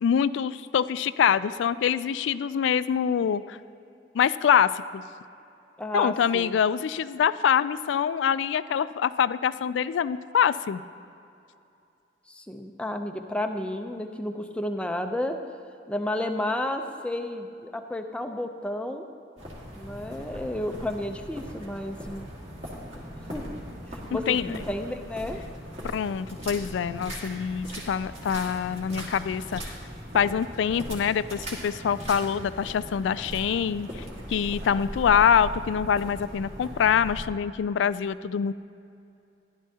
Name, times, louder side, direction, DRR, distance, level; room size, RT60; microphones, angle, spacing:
voice 1, 0.0-3.6 4.1-5.0 5.9-10.8 24.3-24.5 25.9-29.6 30.1-34.0 34.3-38.5, left 7 dB, 75° left, 16 dB, 0.3 m, -25 dB
voice 2, 5.8-6.5 12.3-15.4 15.9-19.1 19.8-22.3 22.9-23.0 23.3-23.4 23.9-25.4, left 1 dB, 5° left, 5 dB, 0.5 m, -32 dB
sound 1, 19.4-37.2, equal, 35° right, 2.0 m, -39 dB
14.5 x 11.5 x 2.8 m, 2.7 s
head